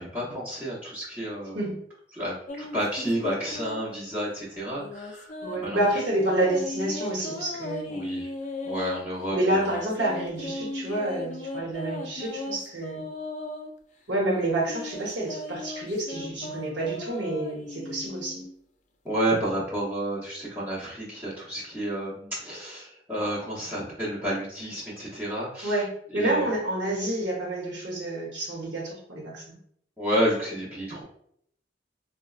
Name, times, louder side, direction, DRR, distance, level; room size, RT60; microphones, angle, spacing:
voice 1, 0.0-1.6 2.1-5.3 5.6-5.8 7.9-8.3 8.6-9.7 19.0-25.8 26.1-26.5 30.0-31.0, right 1 dB, 10° right, -10 dB, 0.7 m, -30 dB
sound 1, 2.5-4.0 4.7-9.0 9.5-13.7 14.3-18.5, left 2 dB, 40° left, 0.4 m, -37 dB
voice 2, 5.4-7.9 9.3-13.0 14.1-18.4 25.6-29.6, right 1 dB, 75° right, -4 dB, 0.9 m, -28 dB
4.0 x 2.1 x 2.3 m, 0.68 s
head